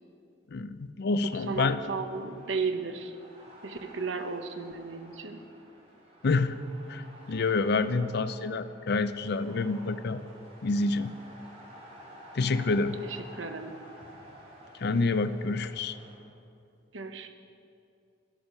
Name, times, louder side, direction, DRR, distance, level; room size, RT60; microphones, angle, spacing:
voice 1, 0.5-1.8 6.2-6.6 6.9-10.2 10.6-11.1 12.3-13.0 14.8-16.0, left 3 dB, 60° left, 12 dB, 0.5 m, -28 dB
voice 2, 1.5-3.1 3.6-5.4 12.6-12.7 13.3-13.8 16.9-17.3, right 4 dB, 85° right, 7 dB, 0.9 m, -34 dB
sound 1, 2.0-16.1, equal, 35° right, 2.7 m, -52 dB
11.5 x 10.5 x 5.4 m, 2.6 s
head